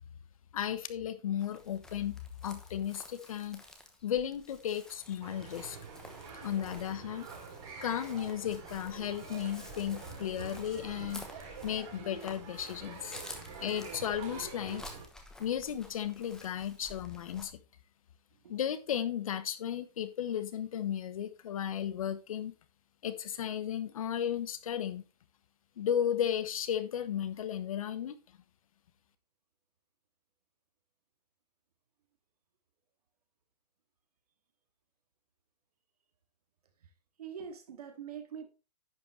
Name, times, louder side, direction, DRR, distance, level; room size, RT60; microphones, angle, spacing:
voice 1, 0.5-3.6 4.0-5.8 6.4-7.3 7.8-11.3 11.6-13.2 13.6-14.8 15.4-17.6 18.5-22.5 23.0-25.0 25.8-28.2, left 9 dB, 55° left, 1.1 m, -34 dB
Chirp tweet, 1.4-17.5, left 2 dB, 5° left, 1.0 m, -52 dB
sound 1, 5.2-15.1, right 5 dB, 40° right, 4.1 m, -46 dB
voice 2, 18.3-18.6 36.8-36.9 37.2-38.5, right 7 dB, 60° right, 2.4 m, -44 dB
10.5 x 7.7 x 3.3 m
hypercardioid pair, 165°, 21 cm